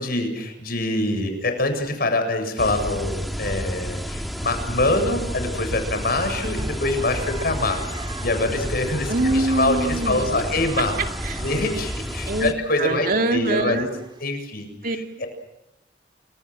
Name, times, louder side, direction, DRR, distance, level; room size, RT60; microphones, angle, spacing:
voice 1, 0.0-7.8 8.2-11.0 11.4-13.9 14.2-15.3, left 2 dB, 60° left, 7 dB, 7.6 m, -25 dB
sound 1, 2.6-12.5, equal, ahead, 2.3 m, -30 dB
sound 2, 6.0-14.3, right 3 dB, 25° right, 4.1 m, -41 dB
voice 2, 9.1-10.4 11.2-11.4 12.3-12.5 12.8-13.9 14.8-15.0, right 2 dB, 55° right, 4 dB, 2.5 m, -23 dB
29.5 x 27.5 x 6.3 m, 0.84 s
head